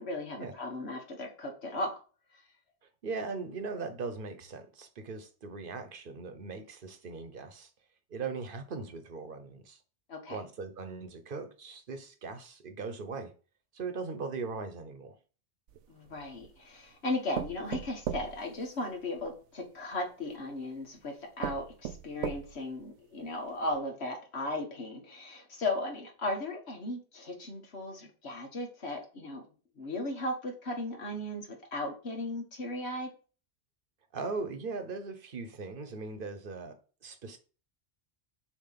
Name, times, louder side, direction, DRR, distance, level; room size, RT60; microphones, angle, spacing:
voice 1, 0.0-2.0 2.3-2.4 10.1-10.4 15.9-29.4 29.8-33.1, left 2 dB, 65° left, 1.7 m, -36 dB
voice 2, 3.0-7.7 8.1-9.8 10.3-13.3 13.7-15.1 34.1-37.4, right 4 dB, 50° right, 1.1 m, -39 dB
sound 1, 15.7-16.6 17.3-19.3 20.3-20.4 21.0-21.1 21.4-22.8 23.3-23.4 23.7-23.8, right 9 dB, 80° right, 0.9 m, -38 dB
6.9 x 3.0 x 5.7 m
omnidirectional pair, 1.2 m